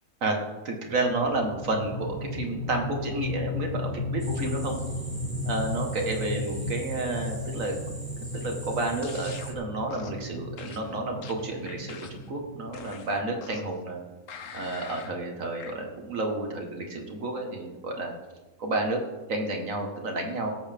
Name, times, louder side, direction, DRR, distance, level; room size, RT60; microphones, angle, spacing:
voice 1, 0.6-4.8 5.4-7.8 8.3-14.0 14.5-18.1 18.6-19.0 19.3-20.5, right 2 dB, 65° right, 2 dB, 2.0 m, -31 dB
sound 1, 0.9-13.1, left 2 dB, 25° left, 3.2 m, -35 dB
sound 2, 4.2-9.5, right 1 dB, 15° right, 1.1 m, -44 dB
sound 3, 9.0-9.5 9.9-10.2 10.6-12.3 12.7-13.8 14.3-15.1 15.6-15.7, left 6 dB, 65° left, 1.2 m, -44 dB
18.0 x 8.3 x 3.6 m, 1.2 s
omnidirectional pair, 1.5 m